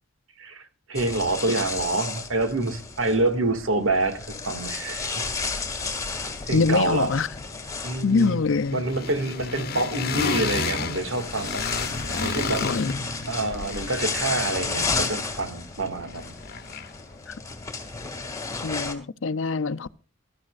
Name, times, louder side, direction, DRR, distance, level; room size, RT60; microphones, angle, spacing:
voice 1, 0.4-5.2 6.5-7.2 7.8-8.4 8.7-11.6 12.2-12.7 13.3-16.3, right 2 dB, 85° right, 2.2 m, -27 dB
sound 1, 1.0-18.9, left 4 dB, 15° left, 2.3 m, -33 dB
sound 2, 3.2-3.3 3.5-4.7 4.9-17.1, left 4 dB, 50° left, 1.0 m, -34 dB
voice 2, 6.5-7.3 8.0-8.8 12.6-12.9 18.6-19.9, left 4 dB, 70° left, 0.6 m, -24 dB
22.5 x 13.0 x 2.5 m
head